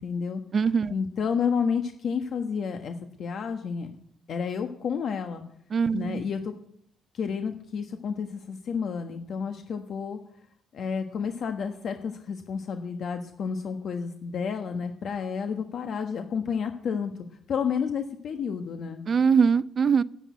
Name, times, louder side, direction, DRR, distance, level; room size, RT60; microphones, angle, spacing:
voice 1, 0.0-0.4 0.9-4.0 4.3-5.4 5.9-6.5 7.1-10.2 10.7-17.1 17.5-19.0, left 6 dB, 65° left, 5 dB, 1.3 m, -30 dB
voice 2, 0.5-0.9 5.7-6.2 19.1-20.0, right 6 dB, 45° right, 18 dB, 0.6 m, -22 dB
10.5 x 10.5 x 8.3 m, 0.70 s
cardioid pair, 90°, 0 cm